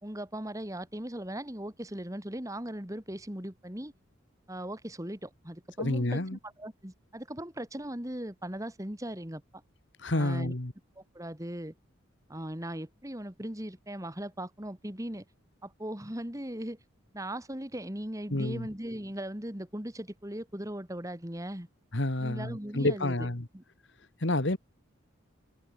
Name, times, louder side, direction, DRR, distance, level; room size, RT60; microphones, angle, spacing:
voice 1, 0.0-3.9 4.5-9.4 10.1-10.5 11.0-11.7 12.3-15.2 15.6-16.8 17.1-21.7 22.2-23.2 23.5-23.6, right 1 dB, 15° right, 2.3 m, -38 dB
voice 2, 5.8-6.4 10.0-10.7 18.3-18.7 21.9-23.5 24.2-24.6, left 1 dB, 60° left, 1.9 m, -29 dB
head